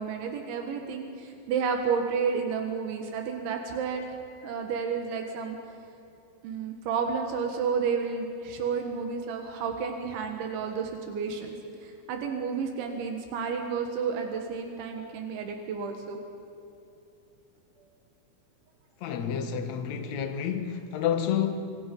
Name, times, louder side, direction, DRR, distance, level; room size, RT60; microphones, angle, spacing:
voice 1, 0.0-4.2 4.4-5.6 6.4-11.6 11.8-16.2, right 6 dB, 85° right, 4.0 m, -31 dB
voice 2, 19.0-21.7, left 8 dB, 70° left, 1.6 m, -29 dB
29.5 x 26.0 x 5.5 m
omnidirectional pair, 5.2 m